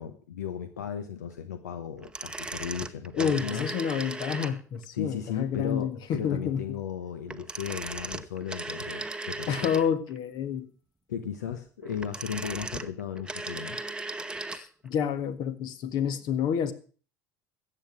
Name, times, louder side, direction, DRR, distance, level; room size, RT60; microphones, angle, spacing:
voice 1, 0.0-3.7 4.9-9.6 11.1-13.8, left 8 dB, 80° left, 10 dB, 1.0 m, -36 dB
sound 1, 2.0-4.8 7.3-10.2 11.8-14.7 14.9-15.0, right 2 dB, 10° right, 0.9 m, -37 dB
voice 2, 3.1-6.8 9.5-10.7 14.5-16.7, left 8 dB, 55° left, 11 dB, 1.7 m, -29 dB
14.0 x 9.0 x 6.3 m, 0.40 s
hypercardioid pair, 70°, 9 cm